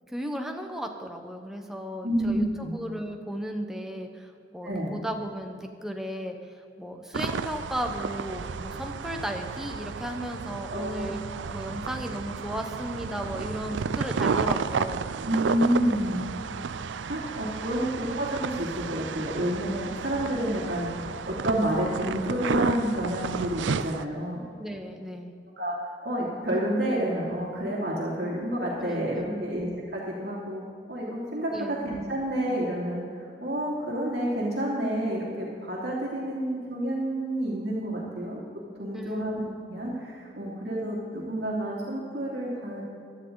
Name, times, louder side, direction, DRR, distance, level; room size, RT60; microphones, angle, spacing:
voice 1, 0.1-6.4 6.8-11.2 11.5-15.0 17.7-17.9 24.6-25.4 28.8-29.5 31.5-31.9 38.9-39.3, equal, ahead, 3 dB, 1.0 m, -35 dB
voice 2, 2.0-2.7 4.6-5.0 10.7-11.1 11.7-11.8 15.2-16.2 17.1-20.9 21.3-24.4 25.6-30.6 30.9-38.4 38.8-39.4 39.7-42.8, right 1 dB, 60° right, -5 dB, 2.8 m, -29 dB
sound 1, 7.1-24.0, right 5 dB, 80° right, 0.5 m, -32 dB
17.5 x 12.5 x 4.0 m, 2.5 s
head